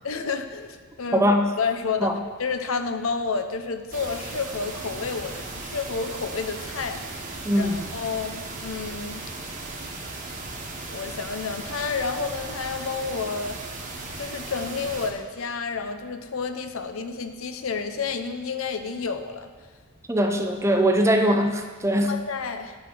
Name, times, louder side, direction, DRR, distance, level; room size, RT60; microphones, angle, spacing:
voice 1, 0.0-1.3 1.6-9.2 10.9-13.6 14.2-19.5 22.1-22.8, left 5 dB, 70° left, 8 dB, 0.7 m, -30 dB
voice 2, 1.1-1.5 2.0-2.2 7.4-7.9 20.1-22.2, equal, 15° right, 5 dB, 0.6 m, -21 dB
sound 1, 3.9-15.1, right 3 dB, 40° right, 1.3 m, -37 dB
9.6 x 6.2 x 6.2 m, 1.5 s
head